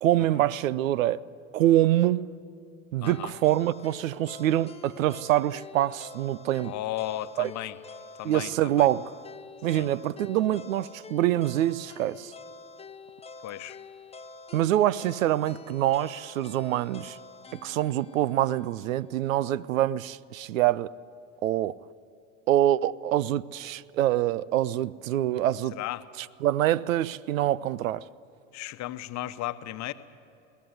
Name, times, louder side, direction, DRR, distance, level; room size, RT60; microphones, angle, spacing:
voice 1, 0.0-1.2 1.5-2.3 2.9-6.7 7.4-7.5 8.2-9.1 9.6-12.3 14.5-17.2 17.6-20.9 21.4-21.8 22.5-25.7 26.2-28.1, right 13 dB, 80° right, 0.6 m, -25 dB
voice 2, 3.0-3.3 6.6-7.8 8.2-8.9 9.7-9.9 13.4-13.8 25.7-26.1 28.5-29.9, left 14 dB, 45° left, 1.0 m, -35 dB
sound 1, 3.0-19.1, left 4 dB, 15° left, 0.9 m, -47 dB
22.0 x 17.5 x 7.9 m
hypercardioid pair, 85°, 39 cm